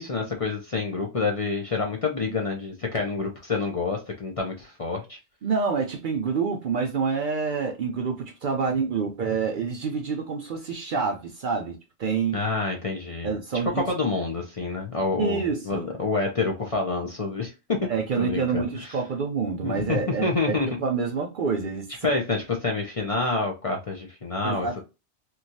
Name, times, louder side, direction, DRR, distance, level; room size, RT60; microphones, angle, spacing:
voice 1, 0.0-5.2 12.3-13.3 13.7-17.8 18.2-19.0 19.6-20.8 22.0-24.7, left 3 dB, 40° left, 0.6 m, -28 dB
voice 2, 5.4-12.4 13.2-13.8 15.2-15.9 17.8-22.1 24.4-24.8, right 5 dB, 60° right, 0.6 m, -27 dB
3.0 x 2.3 x 2.6 m
omnidirectional pair, 1.2 m